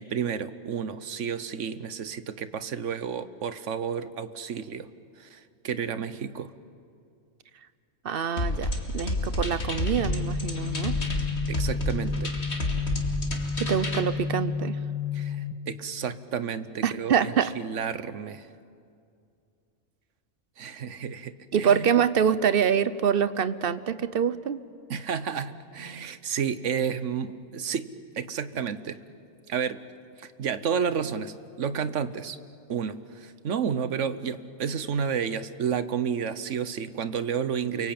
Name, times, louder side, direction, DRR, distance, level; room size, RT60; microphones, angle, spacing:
voice 1, 0.0-4.9 5.2-6.5 11.5-12.3 15.1-18.5 20.6-21.8 24.9-27.9 28.1-29.0 29.5-29.8 30.2-32.4 32.7-37.9, right 7 dB, 65° right, 14 dB, 1.3 m, -31 dB
voice 2, 8.0-11.0 13.6-14.8 16.8-17.5 21.5-24.6, right 7 dB, 50° right, 14 dB, 0.9 m, -25 dB
sound 1, 8.4-14.0, left 1 dB, 55° left, 2.7 m, -30 dB
sound 2, 10.0-15.5, left 5 dB, 15° left, 1.7 m, -31 dB
29.0 x 23.5 x 8.8 m, 2.4 s
omnidirectional pair, 1.4 m